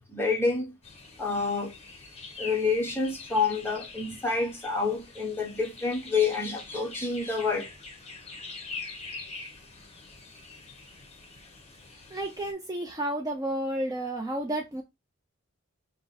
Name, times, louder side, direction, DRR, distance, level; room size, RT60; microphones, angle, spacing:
voice 1, 0.1-0.7 1.2-1.7 2.4-7.7, left 4 dB, 10° left, 1.1 m, -28 dB
sound 1, 0.8-12.5, left 3 dB, 30° left, 1.2 m, -44 dB
voice 2, 12.1-14.8, right 1 dB, 15° right, 0.5 m, -31 dB
4.7 x 2.1 x 4.1 m
head